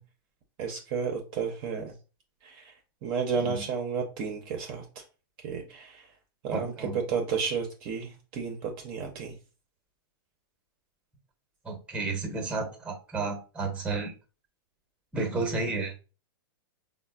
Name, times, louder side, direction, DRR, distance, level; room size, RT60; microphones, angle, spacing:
voice 1, 0.6-1.9 2.4-2.7 3.0-4.9 5.4-6.0 6.4-9.3, right 6 dB, 40° right, 3 dB, 0.6 m, -32 dB
voice 2, 6.5-7.0 11.6-14.1 15.1-15.9, right 3 dB, 10° right, 4 dB, 0.8 m, -32 dB
3.9 x 2.0 x 2.3 m, 0.33 s
hypercardioid pair, 135°, 13 cm